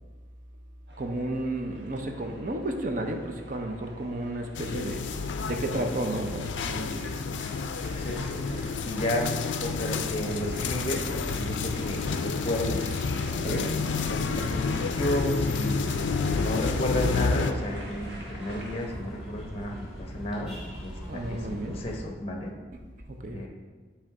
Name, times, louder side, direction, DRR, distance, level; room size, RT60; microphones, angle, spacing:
sound 1, 0.9-18.9, right 1 dB, 65° right, 1.2 m, -47 dB
voice 1, 1.0-5.0 5.5-7.1 13.3-13.7 21.1-21.8 23.1-23.5, right 1 dB, 45° right, 4 dB, 0.6 m, -32 dB
sound 2, 4.5-17.5, left 4 dB, 70° left, 0.4 m, -30 dB
sound 3, 7.8-22.0, equal, 5° right, 1.6 m, -41 dB
voice 2, 8.0-9.3 9.6-12.9 13.4-13.7 14.1-15.8 16.3-22.5 23.2-23.5, left 1 dB, 30° left, 1 dB, 0.8 m, -32 dB
7.6 x 3.4 x 4.7 m, 1.4 s
head